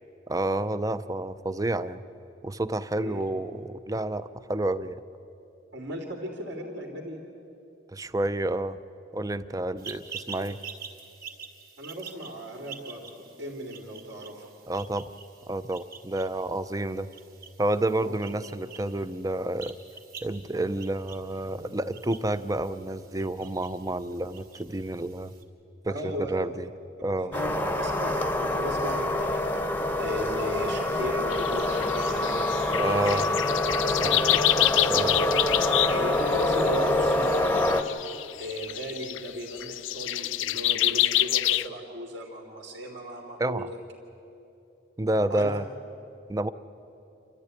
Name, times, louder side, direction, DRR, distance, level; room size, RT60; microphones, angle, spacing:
voice 1, 0.3-2.0 2.4-5.0 7.9-8.8 9.1-10.6 14.7-15.1 15.5-17.1 17.6-19.8 20.2-25.3 25.8-26.7 27.0-27.3 32.7-33.3 34.1-34.2 34.6-35.2 43.4-43.7 45.0-45.7 46.3-46.5, right 1 dB, 20° right, 13 dB, 0.5 m, -29 dB
voice 2, 5.7-7.2 11.8-13.1 13.4-14.5 18.0-18.2 25.9-26.6 27.2-27.5 27.8-29.4 30.0-33.2 33.8-34.5 35.8-37.9 38.4-43.8 45.3-45.5, equal, 70° right, 0 dB, 2.8 m, -36 dB
sound 1, 9.8-25.4, right 6 dB, 50° right, 2.7 m, -47 dB
sound 2, 27.3-37.8, left 1 dB, 10° left, 0.9 m, -26 dB
sound 3, 31.3-41.7, left 15 dB, 85° left, 0.5 m, -27 dB
28.5 x 13.5 x 9.8 m, 2.9 s
head